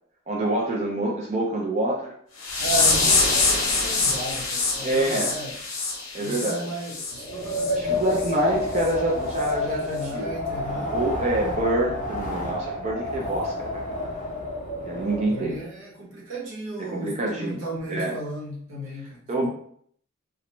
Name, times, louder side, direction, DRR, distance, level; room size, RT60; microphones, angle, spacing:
voice 1, 0.3-2.1 4.8-5.3 6.1-6.7 7.8-10.3 10.9-14.1 14.8-15.6 16.8-17.6 17.9-18.2 19.3-19.5, right 1 dB, 35° right, -1 dB, 0.4 m, -26 dB
sound 1, 2.4-7.1 7.5-7.7 8.2-8.3 8.8-8.9 9.4-9.5, left 3 dB, 75° left, 0.8 m, -24 dB
voice 2, 2.6-5.5 6.2-8.4 9.6-10.9 14.9-19.5, right 1 dB, 85° right, -4 dB, 1.0 m, -35 dB
Wind, 7.1-15.6, left 2 dB, 40° left, 0.5 m, -30 dB
2.4 x 2.1 x 2.9 m, 0.62 s
head